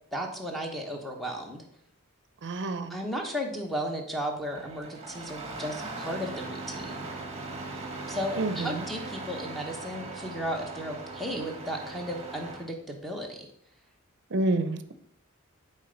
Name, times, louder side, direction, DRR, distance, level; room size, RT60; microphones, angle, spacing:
voice 1, 0.1-1.6 2.9-7.1 8.1-13.5, equal, ahead, 2 dB, 1.1 m, -34 dB
voice 2, 2.4-3.0 8.4-8.8 14.3-14.9, right 2 dB, 55° right, 11 dB, 0.6 m, -28 dB
Engine starting, 4.5-12.7, right 3 dB, 30° right, 1.3 m, -39 dB
7.3 x 4.4 x 5.1 m, 0.71 s
head